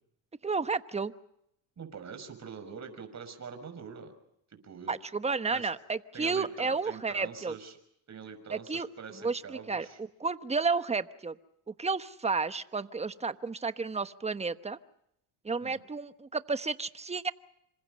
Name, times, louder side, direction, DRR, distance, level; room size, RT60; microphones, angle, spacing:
voice 1, 0.4-1.1 4.9-7.5 8.5-8.9 9.2-11.3 11.7-14.8 15.4-17.3, right 4 dB, 15° right, 12 dB, 1.1 m, -32 dB
voice 2, 1.8-4.1 4.5-4.9 5.5-5.7 6.1-7.8 8.1-10.0 15.6-15.8, right 6 dB, 35° right, 7 dB, 5.9 m, -44 dB
27.5 x 26.0 x 5.4 m, 0.78 s
supercardioid pair, 95°, 48 cm